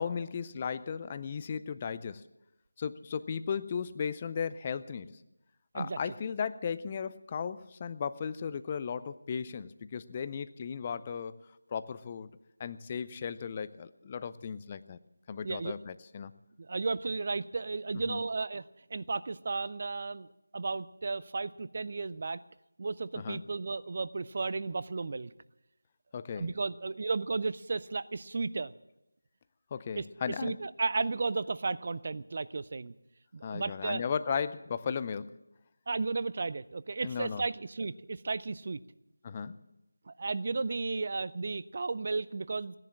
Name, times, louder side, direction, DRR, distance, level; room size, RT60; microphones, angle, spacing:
voice 1, 0.0-2.3 2.8-5.2 5.7-11.4 11.7-12.3 12.6-15.0 15.3-16.3 18.1-18.2 23.2-23.5 26.1-26.5 29.7-30.6 33.4-35.4 37.0-37.5 39.2-39.6, left 6 dB, 20° left, 14 dB, 0.5 m, -36 dB
voice 2, 15.4-15.7 16.7-18.6 18.9-20.3 20.5-22.4 22.8-25.3 26.4-28.7 30.0-30.1 30.4-32.9 33.3-34.0 35.9-38.8 40.1-42.7, right 3 dB, 35° right, 16 dB, 0.5 m, -34 dB
17.0 x 10.5 x 7.4 m, 0.90 s
figure-of-eight pair, 165°, 0 cm